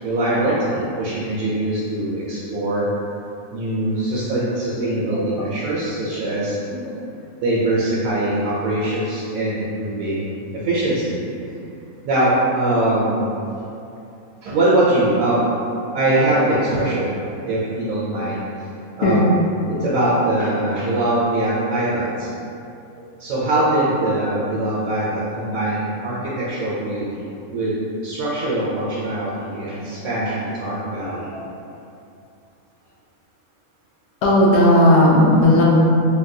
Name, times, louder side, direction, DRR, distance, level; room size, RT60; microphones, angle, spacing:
voice 1, 0.0-2.9 3.5-6.6 7.4-10.3 10.7-11.2 12.0-13.4 14.4-15.5 15.9-18.4 19.0-19.4 19.8-22.3 23.0-31.3, right 1 dB, 80° right, -8 dB, 1.0 m, -22 dB
voice 2, 4.9-5.8 6.7-7.0 16.1-16.2 19.0-19.2 31.0-31.4 34.2-35.6, left 1 dB, 65° left, -4 dB, 0.8 m, -17 dB
3.5 x 2.3 x 2.6 m, 2.7 s
omnidirectional pair, 1.5 m